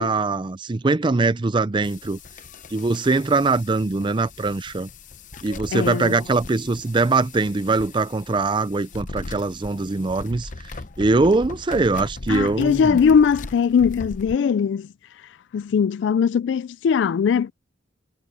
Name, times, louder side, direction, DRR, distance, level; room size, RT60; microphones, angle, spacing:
voice 1, 0.0-2.2 2.7-4.9 5.4-10.7 11.0-13.0, right 3 dB, 25° right, 0.5 m, -22 dB
sound 1, 1.8-14.4, left 3 dB, 45° left, 0.8 m, -39 dB
voice 2, 5.7-6.2 12.3-14.9 15.5-17.5, left 6 dB, 75° left, 0.3 m, -20 dB
head